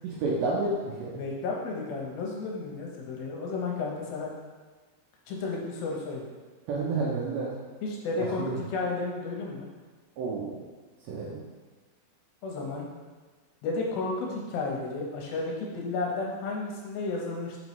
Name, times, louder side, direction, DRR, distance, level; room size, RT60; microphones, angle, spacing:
voice 1, 0.0-1.2 6.7-7.5 8.2-8.6 10.2-10.6 11.1-11.4, right 3 dB, 75° right, -4 dB, 2.3 m, -30 dB
voice 2, 1.2-4.3 5.3-6.3 7.8-9.7 12.4-12.9 13.6-17.6, left 3 dB, 75° left, -2 dB, 2.2 m, -32 dB
6.0 x 5.5 x 3.1 m, 1.4 s
omnidirectional pair, 5.1 m